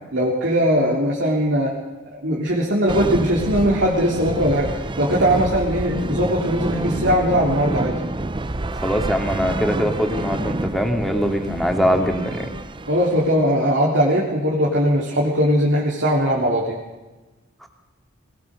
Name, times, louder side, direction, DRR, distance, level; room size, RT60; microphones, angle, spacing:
voice 1, 0.1-1.7 2.1-4.7 5.0-7.9 12.9-16.8, equal, 65° right, -4 dB, 3.7 m, -20 dB
sound 1, 2.9-13.6, right 2 dB, 25° right, 0.7 m, -28 dB
voice 2, 8.7-12.5, equal, ahead, 3 dB, 2.6 m, -22 dB
21.5 x 20.0 x 6.7 m, 1.2 s
head